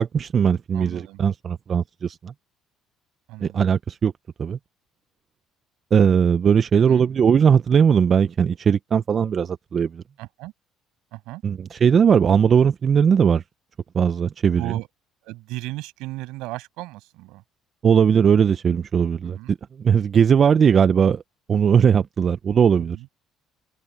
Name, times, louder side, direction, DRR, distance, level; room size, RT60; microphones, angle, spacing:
voice 1, 0.0-2.3 3.4-4.1 4.4-4.6 5.9-10.0 11.4-13.4 13.9-14.7 17.8-21.2 21.5-23.0, right 7 dB, 45° right, 0.9 m, -19 dB
voice 2, 0.7-1.2 3.3-3.6 6.8-7.0 10.2-10.5 11.1-11.4 14.6-14.9 15.2-17.4 19.2-19.5 22.8-23.1, right 20 dB, 80° right, 7.6 m, -35 dB
open air
supercardioid pair, 70°, 0 cm